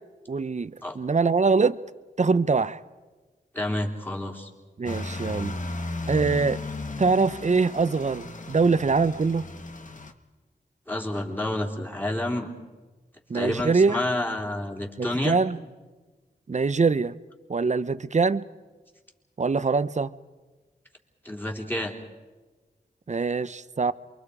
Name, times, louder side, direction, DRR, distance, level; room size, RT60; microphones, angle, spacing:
voice 1, 0.3-1.8 2.2-2.8 4.8-5.6 6.1-6.6 7.0-9.5 13.3-14.0 15.0-15.6 16.5-17.2 17.5-18.4 19.4-20.2 23.1-23.9, right 4 dB, 40° right, 0.7 m, -23 dB
voice 2, 3.5-4.5 10.9-12.5 13.3-15.4 21.2-21.9, left 1 dB, 10° left, 3.5 m, -29 dB
sound 1, 4.9-10.1, left 2 dB, 45° left, 1.3 m, -35 dB
28.5 x 23.5 x 5.0 m
cardioid pair, 55°, 18 cm